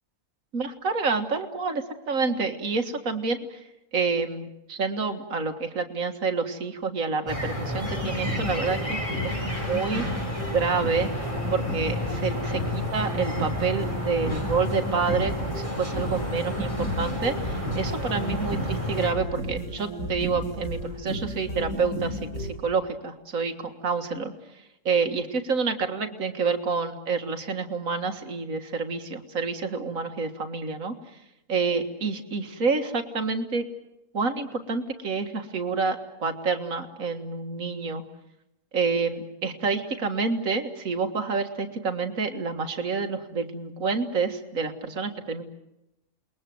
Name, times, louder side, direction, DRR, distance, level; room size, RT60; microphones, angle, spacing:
voice 1, 0.5-3.6 3.9-10.1 10.5-11.1 11.5-24.3 24.9-31.0 31.5-33.6 34.1-38.0 38.7-45.4, right 4 dB, 65° right, 6 dB, 2.2 m, -28 dB
sound 1, 7.3-19.1, left 1 dB, 20° left, 4.8 m, -31 dB
sound 2, 7.8-22.5, equal, 85° left, 7.9 m, -34 dB
28.5 x 21.5 x 7.8 m, 0.88 s
omnidirectional pair, 1.6 m